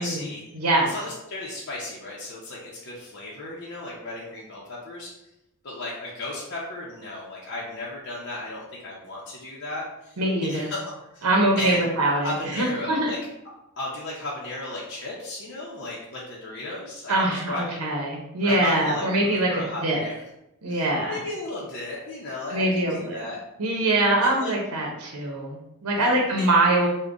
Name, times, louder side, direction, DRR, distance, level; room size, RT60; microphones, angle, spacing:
voice 1, 0.0-0.4 0.8-5.1 5.6-11.3 11.6-11.9 12.1-13.2 13.8-17.8 18.4-20.2 20.7-23.4 24.2-24.5 26.0-26.5, left 2 dB, 50° left, -5 dB, 0.6 m, -35 dB
voice 2, 0.5-0.9 10.2-10.7 11.2-13.1 17.1-20.0 20.6-21.2 22.5-23.2 23.6-26.9, right 2 dB, 90° right, -1 dB, 0.7 m, -23 dB
3.6 x 2.1 x 3.7 m, 0.87 s
head